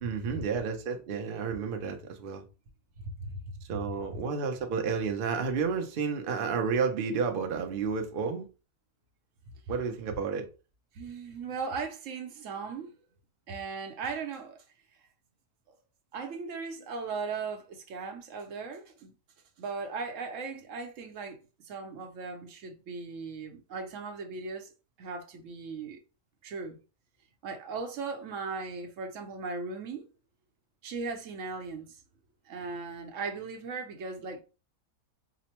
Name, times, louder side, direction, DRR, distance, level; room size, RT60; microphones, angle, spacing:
voice 1, 0.0-2.4 3.7-8.5 9.7-10.5, right 5 dB, 85° right, 0.4 m, -31 dB
voice 2, 3.0-3.4 3.7-3.9 10.9-12.9 13.5-14.6 15.7-15.8 16.1-19.1 19.6-21.4 21.6-24.7 25.0-26.0 26.4-26.8 27.4-30.1 30.8-32.0 32.5-34.4, right 4 dB, 60° right, 0.9 m, -38 dB
4.9 x 2.1 x 2.9 m
omnidirectional pair, 1.8 m